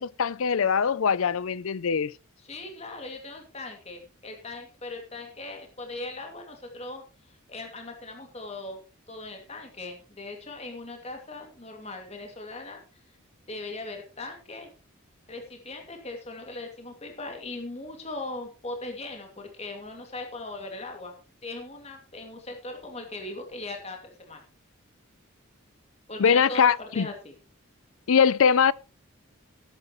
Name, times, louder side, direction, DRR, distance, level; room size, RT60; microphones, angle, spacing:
voice 1, 0.0-2.1 26.2-27.1 28.1-28.7, left 6 dB, 75° left, 0.5 m, -22 dB
voice 2, 2.4-7.0 7.3-8.8 9.1-12.8 13.5-14.7 15.3-21.2 21.4-24.4 26.1-27.4, left 2 dB, 30° left, 2.4 m, -39 dB
18.5 x 8.9 x 3.1 m
head